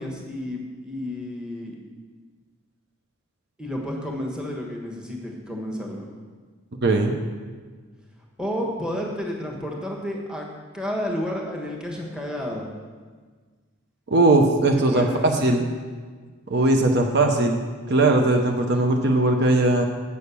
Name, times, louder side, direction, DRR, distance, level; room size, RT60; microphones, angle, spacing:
voice 1, 0.0-1.7 3.6-6.1 8.4-12.7 14.9-15.6, left 1 dB, 5° right, -1 dB, 1.3 m, -31 dB
voice 2, 6.8-7.2 14.1-15.7 16.5-19.8, right 2 dB, 50° right, 3 dB, 0.8 m, -19 dB
8.3 x 6.4 x 6.9 m, 1.5 s
head